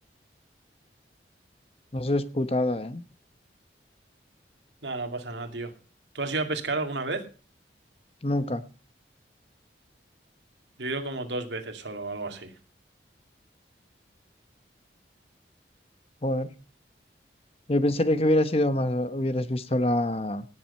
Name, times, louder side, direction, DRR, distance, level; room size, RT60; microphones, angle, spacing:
voice 1, 1.9-3.0 8.2-8.6 16.2-16.5 17.7-20.5, left 1 dB, 35° left, 13 dB, 0.9 m, -25 dB
voice 2, 4.8-5.7 6.1-7.2 10.8-12.5, right 3 dB, 80° right, 6 dB, 2.3 m, -31 dB
18.0 x 7.7 x 5.5 m, 0.36 s
head